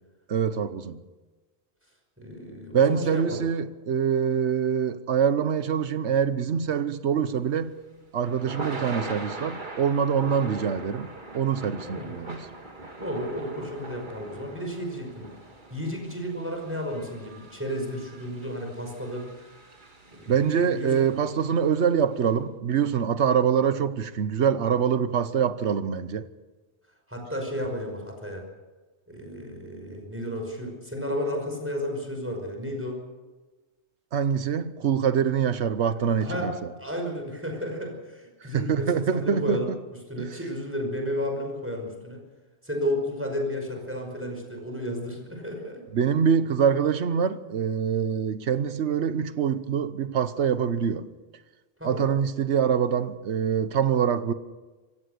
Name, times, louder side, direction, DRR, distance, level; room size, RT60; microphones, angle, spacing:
voice 1, 0.3-1.0 2.7-7.8 8.1-12.5 20.3-26.3 34.1-36.5 38.5-39.6 40.2-40.4 45.9-51.1 51.8-54.3, right 7 dB, 80° right, 1.2 m, -25 dB
voice 2, 2.2-3.4 10.3-10.5 11.8-12.2 13.0-15.3 15.7-19.2 20.2-21.1 27.1-28.4 29.1-33.0 35.9-36.5 36.8-39.7 40.1-42.2 42.6-45.8 51.8-52.1, equal, 10° right, 5.5 m, -33 dB
Thunder / Rain, 7.5-21.7, right 2 dB, 45° right, 2.2 m, -41 dB
26.0 x 16.0 x 6.8 m
omnidirectional pair, 1.2 m